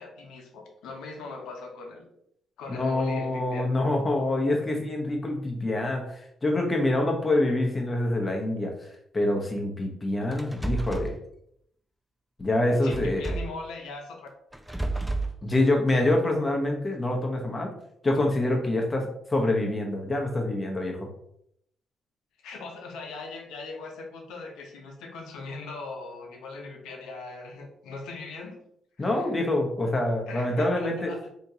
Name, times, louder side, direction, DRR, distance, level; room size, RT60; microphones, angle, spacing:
voice 1, 0.0-2.1 2.6-3.7 12.8-14.3 22.4-28.6 29.0-29.3 30.2-31.2, left 3 dB, 90° left, 2 dB, 0.7 m, -40 dB
voice 2, 2.7-11.2 12.4-13.4 15.4-17.7 18.0-21.1 29.0-31.1, left 1 dB, 25° left, 1 dB, 0.8 m, -26 dB
sound 1, 10.3-11.1 12.9-13.6 14.5-15.3, right 2 dB, 5° right, 0.3 m, -31 dB
3.5 x 2.8 x 2.7 m, 0.74 s
cardioid pair, 90°, 0 cm